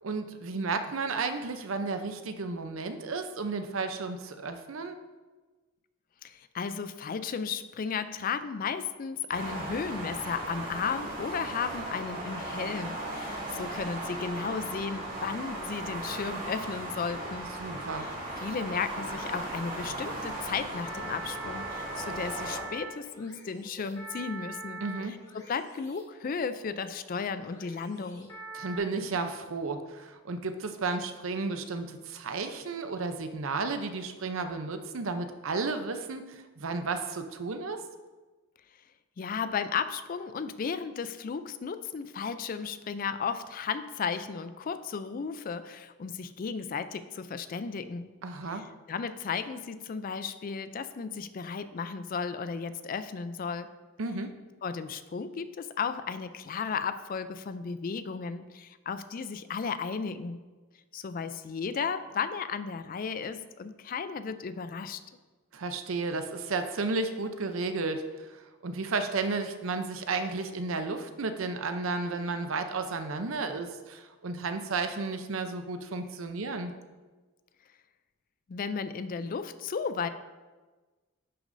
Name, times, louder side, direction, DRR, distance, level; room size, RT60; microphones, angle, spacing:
voice 1, 0.0-5.0 17.6-18.1 24.8-25.1 28.5-37.8 48.2-48.6 54.0-54.3 65.5-76.7, right 3 dB, 70° right, 8 dB, 0.6 m, -33 dB
voice 2, 6.2-17.5 18.0-24.8 25.1-28.3 39.2-48.1 48.5-53.7 54.6-60.4 60.9-65.0 78.5-80.1, left 5 dB, 40° left, 12 dB, 0.3 m, -34 dB
sound 1, 9.3-22.6, right 1 dB, 40° right, 2.2 m, -37 dB
sound 2, 18.3-28.8, right 3 dB, 15° left, 1.4 m, -45 dB
10.5 x 6.2 x 2.6 m, 1.3 s
head